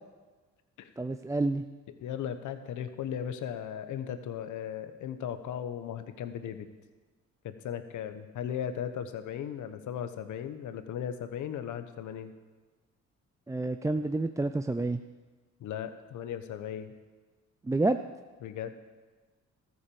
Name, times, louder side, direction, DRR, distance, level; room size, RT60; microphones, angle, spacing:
voice 1, 1.0-1.6 13.5-15.0 17.7-18.0, right 2 dB, 10° right, 8 dB, 0.4 m, -28 dB
voice 2, 2.0-6.7 7.4-12.3 15.6-16.9 18.4-18.7, left 9 dB, 75° left, 9 dB, 1.1 m, -37 dB
13.5 x 9.6 x 7.0 m, 1.3 s
cardioid pair, 90°, 30 cm